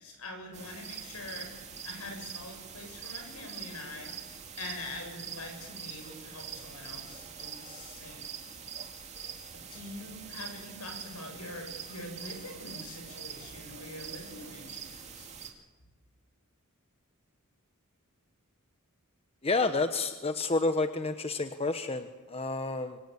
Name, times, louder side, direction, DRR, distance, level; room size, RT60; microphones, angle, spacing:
voice 1, 0.0-1.5 1.8-4.1 4.6-8.6 9.5-15.3, left 1 dB, 75° left, 4 dB, 7.7 m, -44 dB
sound 1, 0.5-15.5, right 7 dB, 30° right, 2.7 m, -44 dB
voice 2, 19.4-23.0, left 3 dB, 25° left, 9 dB, 1.1 m, -30 dB
25.5 x 24.0 x 8.5 m, 1.2 s
head